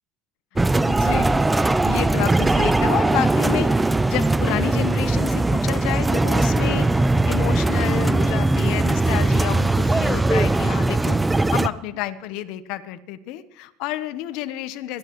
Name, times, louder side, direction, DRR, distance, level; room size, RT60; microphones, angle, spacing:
sound 1, 0.6-11.7, right 2 dB, 10° right, 0.4 m, -20 dB
voice 1, 0.9-15.0, left 13 dB, 70° left, 12 dB, 0.9 m, -30 dB
25.5 x 11.5 x 3.1 m, 0.80 s
supercardioid pair, 115°, 0 cm